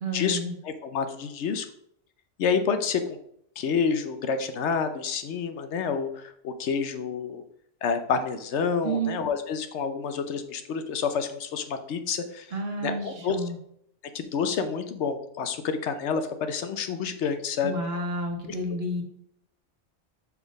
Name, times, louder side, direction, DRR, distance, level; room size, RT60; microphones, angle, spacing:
voice 1, 0.0-0.5 8.8-9.1 12.5-13.6 17.6-19.0, right 1 dB, 55° right, 3 dB, 1.3 m, -30 dB
voice 2, 0.6-1.7 2.4-3.0 3.6-7.4 7.8-12.5 12.8-13.4 14.1-17.7 18.5-18.8, left 6 dB, 75° left, 9 dB, 1.0 m, -28 dB
5.8 x 4.1 x 5.1 m, 0.71 s
omnidirectional pair, 1.2 m